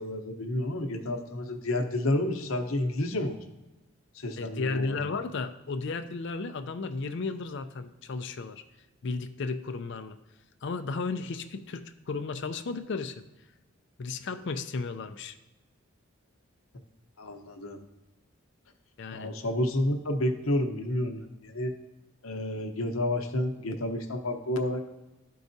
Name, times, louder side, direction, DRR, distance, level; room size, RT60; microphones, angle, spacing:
voice 1, 0.0-3.5 4.1-5.0 17.2-17.8 19.1-21.7 22.2-24.9, left 1 dB, 80° left, 3 dB, 0.8 m, -30 dB
voice 2, 4.4-8.6 9.0-10.2 10.6-13.2 14.0-15.4 19.0-19.3, left 4 dB, 55° left, 9 dB, 0.4 m, -34 dB
13.0 x 4.7 x 2.7 m, 1.1 s
head